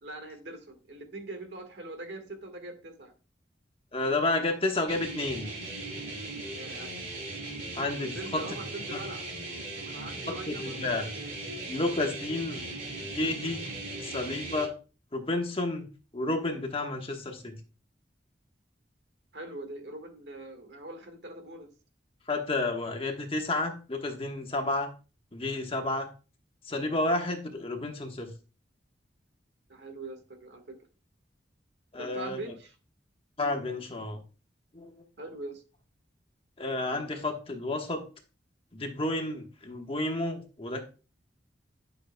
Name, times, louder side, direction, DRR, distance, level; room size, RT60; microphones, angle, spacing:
voice 1, 0.0-3.1 6.5-6.9 8.1-9.3 9.8-10.9 11.2-11.3 19.3-21.7 29.7-30.8 32.0-32.8 35.2-35.6, right 2 dB, 70° right, 1.7 m, -42 dB
voice 2, 3.9-5.5 7.7-8.4 10.3-11.1 11.7-12.6 13.0-13.6 14.0-14.7 15.1-15.8 16.1-17.6 22.3-24.9 25.3-26.1 26.7-28.3 31.9-32.4 33.4-34.2 34.7-35.0 36.6-38.0 38.7-40.8, left 2 dB, 30° left, 1.3 m, -31 dB
sound 1, 4.9-14.7, right 2 dB, 45° right, 3.4 m, -38 dB
11.5 x 6.6 x 2.3 m
head